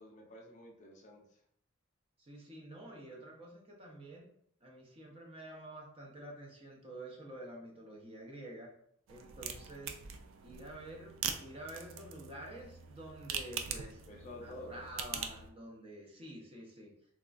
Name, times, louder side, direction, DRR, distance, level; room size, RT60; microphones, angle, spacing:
voice 1, 0.0-1.4 14.1-14.8, left 1 dB, 35° left, 0 dB, 0.4 m, -50 dB
voice 2, 2.2-4.3 4.6-8.7 9.1-10.0 10.4-11.1 11.4-14.0 14.4-16.9, right 1 dB, 30° right, -1 dB, 0.6 m, -49 dB
sound 1, 9.1-15.5, right 7 dB, 80° right, 0.3 m, -43 dB
2.9 x 2.3 x 2.4 m, 0.67 s
head